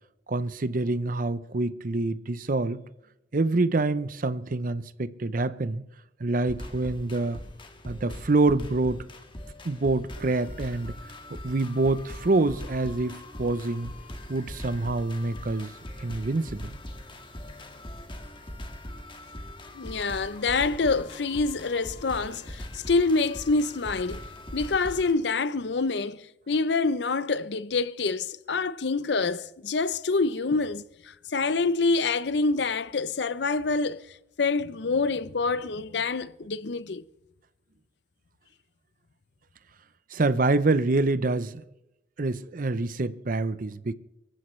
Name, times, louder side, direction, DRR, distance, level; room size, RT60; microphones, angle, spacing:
voice 1, 0.3-2.8 3.3-5.8 6.2-7.4 7.8-9.1 9.6-10.9 11.4-13.9 14.3-15.7 16.0-16.8 40.1-41.6 42.2-43.9, right 2 dB, 50° right, 0.7 m, -26 dB
sound 1, 6.5-25.1, left 1 dB, 25° left, 1.7 m, -41 dB
voice 2, 19.7-24.2 24.5-37.0, left 3 dB, 65° left, 0.6 m, -26 dB
24.5 x 14.5 x 3.2 m
head